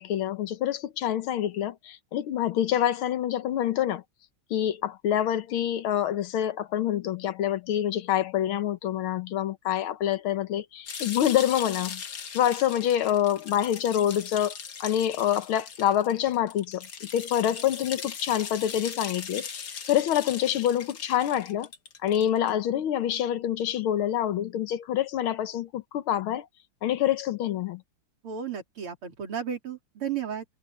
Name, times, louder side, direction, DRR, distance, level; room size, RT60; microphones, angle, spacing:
voice 1, 0.0-4.0 4.5-12.0 12.3-21.7 22.0-26.5 26.8-27.8, left 11 dB, 75° left, 1.8 m, -26 dB
sound 1, 10.9-22.5, left 6 dB, 50° left, 2.0 m, -39 dB
voice 2, 28.2-30.5, right 8 dB, 85° right, 3.9 m, -33 dB
omnidirectional pair, 2.4 m